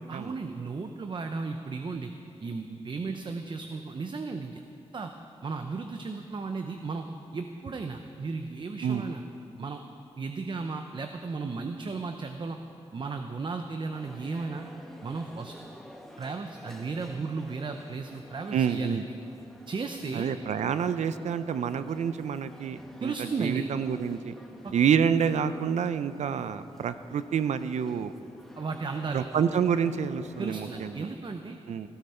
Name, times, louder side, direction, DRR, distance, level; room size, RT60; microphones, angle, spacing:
voice 1, 0.1-2.1 2.4-4.6 4.9-5.1 5.4-7.1 7.3-9.2 9.6-9.8 10.2-12.6 12.9-14.7 15.0-15.5 16.2-19.0 19.7-20.3 23.0-23.7 24.6-24.7 28.6-29.3 30.4-31.6, right 4 dB, 45° right, 6 dB, 0.7 m, -35 dB
sound 1, 13.9-31.1, equal, ahead, 1.7 m, -50 dB
voice 2, 18.5-19.1 20.1-24.3 24.7-28.1 29.1-31.1 31.7-31.9, right 7 dB, 75° right, 12 dB, 0.6 m, -28 dB
18.0 x 13.0 x 4.4 m, 2.6 s
cardioid pair, 75°, 12 cm